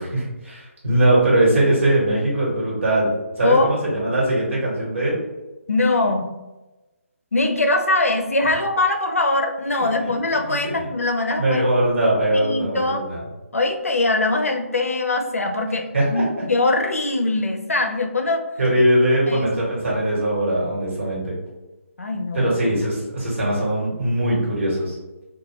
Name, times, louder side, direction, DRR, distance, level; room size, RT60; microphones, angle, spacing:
voice 1, 0.0-3.1 3.4-5.2 10.0-10.1 10.5-10.6 11.4-13.2 15.9-16.2 18.6-21.3 22.3-24.9, right 1 dB, 65° right, -5 dB, 1.3 m, -20 dB
voice 2, 5.7-6.3 7.3-11.6 12.3-13.0 13.5-18.5 19.3-19.5 22.0-22.6, left 2 dB, 80° left, 5 dB, 0.5 m, -22 dB
2.4 x 2.3 x 3.0 m, 1.1 s
figure-of-eight pair, 145°, 8 cm